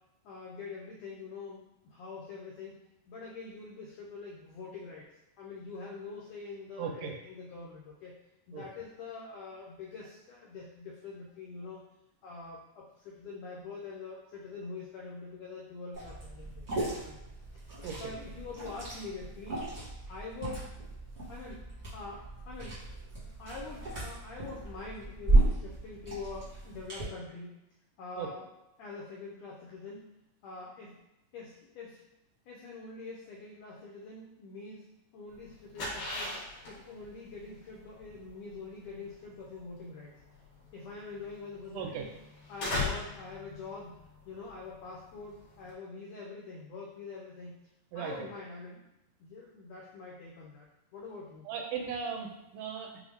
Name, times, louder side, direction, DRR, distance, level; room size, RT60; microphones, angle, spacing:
voice 1, 0.2-2.8 3.1-8.1 8.5-11.8 12.2-17.2 17.5-20.7 21.3-21.6 21.9-22.8 23.4-27.6 28.0-28.4 28.8-30.0 30.4-31.0 31.3-32.0 32.5-34.9 35.1-40.2 40.7-42.1 42.5-47.6 47.9-48.8 49.2-50.7 50.9-51.5, left 4 dB, 90° left, -3 dB, 1.5 m, -45 dB
voice 2, 6.8-7.1 8.5-8.6 17.8-18.1 28.2-28.3 41.7-42.1 47.9-48.3 51.5-53.0, right 6 dB, 80° right, 2 dB, 2.1 m, -37 dB
Liquid, 15.9-27.0, right 2 dB, 45° right, 0.8 m, -33 dB
sound 1, 35.3-45.7, left 2 dB, 55° left, 1.8 m, -40 dB
6.0 x 2.1 x 3.5 m, 0.92 s
omnidirectional pair, 3.8 m